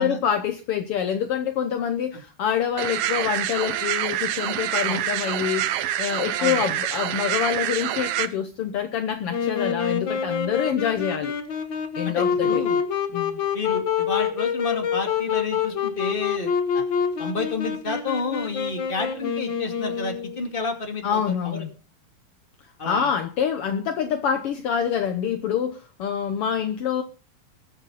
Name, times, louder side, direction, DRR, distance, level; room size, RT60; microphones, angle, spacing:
voice 1, 0.0-5.7 6.0-11.3 12.0-12.6 13.1-13.4 21.0-21.7 22.8-27.0, left 8 dB, 75° left, 7 dB, 1.3 m, -26 dB
sound 1, 2.8-8.3, right 12 dB, 90° right, 1.3 m, -26 dB
Wind instrument woodwind instrument, 9.3-20.4, left 7 dB, 50° left, 1.6 m, -26 dB
voice 2, 12.0-12.8 13.5-16.9 17.2-21.2 21.4-21.6 22.8-23.1, left 3 dB, 20° left, 3 dB, 2.1 m, -30 dB
21.0 x 8.3 x 4.1 m, 0.35 s
omnidirectional pair, 3.7 m